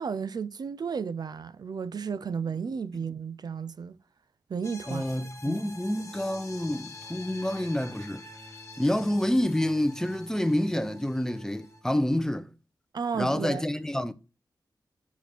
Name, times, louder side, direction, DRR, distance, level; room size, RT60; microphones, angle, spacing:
voice 1, 0.0-4.0 4.5-5.6 12.9-13.6, right 6 dB, 65° right, 0.4 m, -33 dB
sound 1, 4.6-11.8, left 2 dB, 40° left, 2.0 m, -46 dB
voice 2, 4.9-8.2 8.8-12.5 13.1-14.1, left 1 dB, 5° left, 0.7 m, -28 dB
6.1 x 4.9 x 5.0 m
wide cardioid pair, 75°, 7 cm